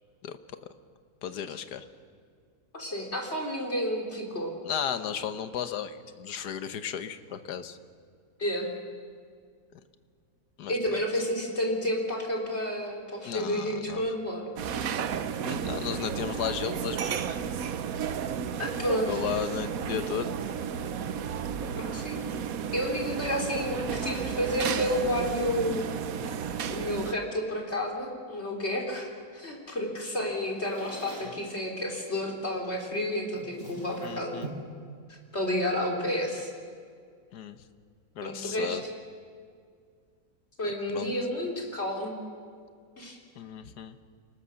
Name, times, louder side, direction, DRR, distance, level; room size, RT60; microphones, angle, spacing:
voice 1, 1.2-1.8 4.6-7.8 10.6-11.0 13.2-14.0 15.4-17.4 19.1-20.3 31.2-31.3 34.0-34.5 37.3-37.6 38.1-38.8 40.6-41.1 43.4-44.0, left 8 dB, 75° left, 10 dB, 1.6 m, -34 dB
voice 2, 2.7-4.5 8.4-8.7 10.7-14.5 18.6-19.2 21.8-22.2 22.7-25.9 26.7-29.1 29.3-34.4 35.3-36.5 38.2-38.8 40.6-42.2 43.0-43.2, equal, 40° left, 0 dB, 4.1 m, -30 dB
sound 1, 14.6-27.1, right 7 dB, 65° right, 1.2 m, -33 dB
Drawer open or close, 30.2-31.4 32.6-32.9 33.3-34.8, right 1 dB, 35° right, 6.6 m, -44 dB
28.5 x 19.5 x 6.5 m, 2.1 s
omnidirectional pair, 1.7 m